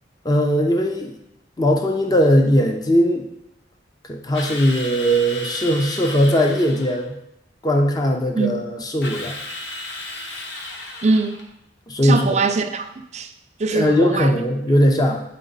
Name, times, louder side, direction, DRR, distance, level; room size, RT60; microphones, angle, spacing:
voice 1, 0.2-1.1 1.6-3.3 4.1-7.1 7.6-9.3 11.9-12.4 13.7-15.2, equal, 20° left, 2 dB, 0.6 m, -19 dB
Drill, 4.3-7.0 9.0-11.5, left 2 dB, 80° left, 1.0 m, -34 dB
voice 2, 8.4-8.7 11.0-11.4 12.0-13.3 13.6-14.3, right 3 dB, 40° right, 7 dB, 0.5 m, -22 dB
9.1 x 4.2 x 4.0 m, 0.82 s
head